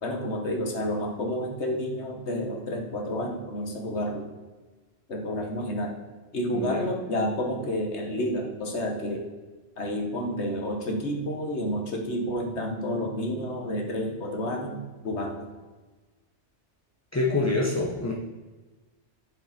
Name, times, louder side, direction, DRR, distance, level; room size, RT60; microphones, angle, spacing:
voice 1, 0.0-4.3 5.1-5.9 6.3-9.2 9.8-15.5, equal, 65° left, 2 dB, 1.6 m, -30 dB
voice 2, 17.1-18.1, left 3 dB, 15° left, -2 dB, 0.6 m, -26 dB
7.1 x 7.1 x 4.2 m, 1.3 s
omnidirectional pair, 1.3 m